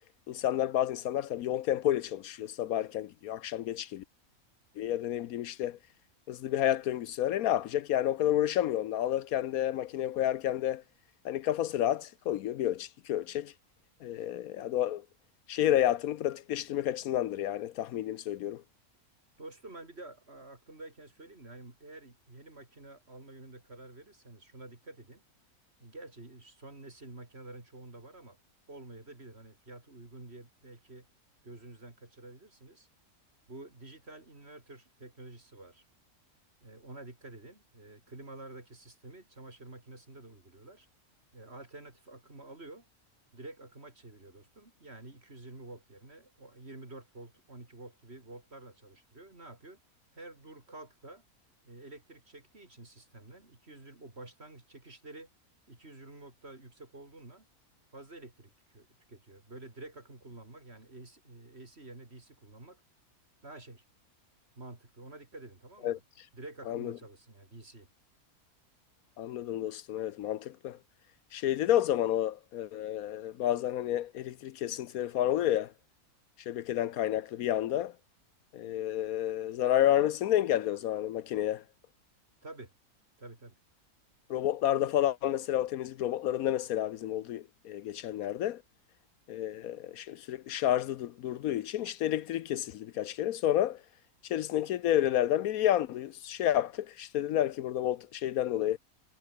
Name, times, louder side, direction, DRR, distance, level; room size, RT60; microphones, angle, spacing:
voice 1, 0.3-4.0 4.8-5.8 6.3-10.8 11.2-13.5 14.0-15.0 15.5-18.6 65.8-66.0 66.7-66.9 69.2-70.8 71.3-75.7 76.5-77.9 78.5-81.6 84.3-88.6 89.3-93.8 94.2-98.8, left 12 dB, 75° left, 1.1 m, -30 dB
voice 2, 19.4-25.2 25.8-28.4 28.7-31.1 31.4-32.9 33.5-35.8 36.6-40.9 41.3-42.9 43.3-49.8 50.1-51.2 51.6-55.3 55.7-57.5 57.9-62.8 63.4-63.8 64.6-66.0 66.3-67.9 82.4-82.7 83.2-83.6, right 2 dB, 40° right, 4.3 m, -49 dB
omnidirectional pair, 1.6 m